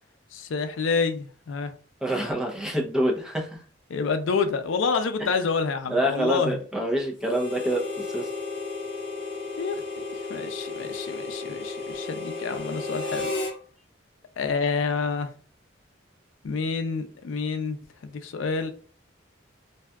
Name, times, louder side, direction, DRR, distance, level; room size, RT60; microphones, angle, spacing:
voice 1, 0.3-1.7 3.9-6.6 9.6-13.3 14.4-15.3 16.4-18.7, left 4 dB, 85° left, 0.4 m, -28 dB
voice 2, 2.0-3.6 5.2-5.3 5.9-8.3, right 1 dB, 5° right, 0.5 m, -26 dB
Harmonica, 7.2-13.6, left 3 dB, 65° left, 0.9 m, -33 dB
2.7 x 2.3 x 3.4 m
head